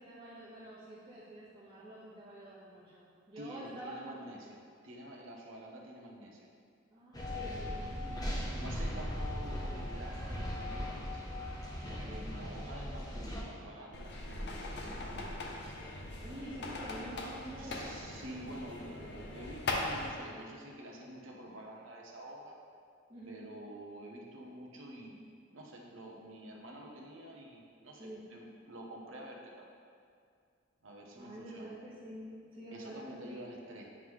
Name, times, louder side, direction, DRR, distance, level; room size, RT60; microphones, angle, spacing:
voice 1, 0.0-4.2 6.9-8.3 11.8-12.5 14.8-15.0 16.2-17.8 23.1-23.4 28.0-28.2 31.1-33.4, right 1 dB, 25° right, -12 dB, 1.2 m, -48 dB
voice 2, 3.4-6.5 8.0-11.3 12.1-15.4 17.6-22.6 23.3-29.7 30.8-31.7 32.7-33.9, right 1 dB, 85° right, 0 dB, 0.9 m, -48 dB
sound 1, 7.1-13.4, left 1 dB, 20° left, 0.7 m, -38 dB
sound 2, 13.9-20.1, left 2 dB, 55° left, 0.6 m, -40 dB
9.5 x 3.7 x 3.2 m, 2.3 s
head